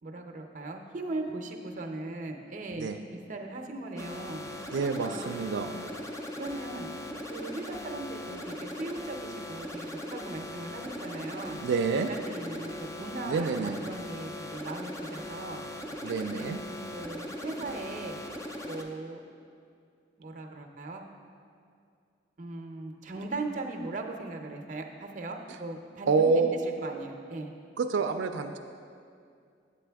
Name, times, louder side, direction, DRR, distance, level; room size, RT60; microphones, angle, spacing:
voice 1, 0.0-4.5 5.0-5.9 6.3-6.9 7.3-11.6 12.1-15.6 16.0-16.5 16.9-18.2 18.7-19.2 20.2-21.0 22.4-27.5, right 2 dB, 40° right, 3 dB, 0.6 m, -39 dB
sound 1, 4.0-18.8, left 1 dB, 15° left, 0.4 m, -39 dB
voice 2, 4.7-5.7 11.5-12.1 13.3-13.9 16.0-16.6 26.1-26.6 27.8-28.6, right 4 dB, 85° right, 6 dB, 0.3 m, -27 dB
8.2 x 8.1 x 3.4 m, 2.3 s
head